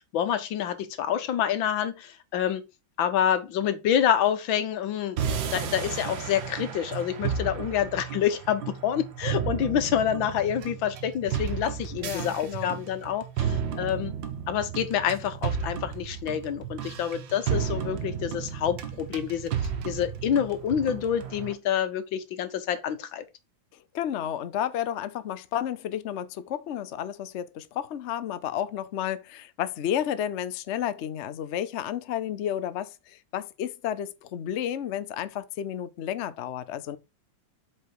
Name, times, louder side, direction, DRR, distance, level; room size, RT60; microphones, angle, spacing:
voice 1, 0.0-2.6 3.0-5.2 5.5-14.1 14.5-19.5 19.8-23.2, left 9 dB, 85° left, 1.7 m, -27 dB
sound 1, 5.2-21.5, right 7 dB, 75° right, 1.8 m, -33 dB
voice 2, 12.0-12.7 23.9-37.0, left 10 dB, 65° left, 0.7 m, -32 dB
8.0 x 4.5 x 4.5 m
omnidirectional pair, 2.1 m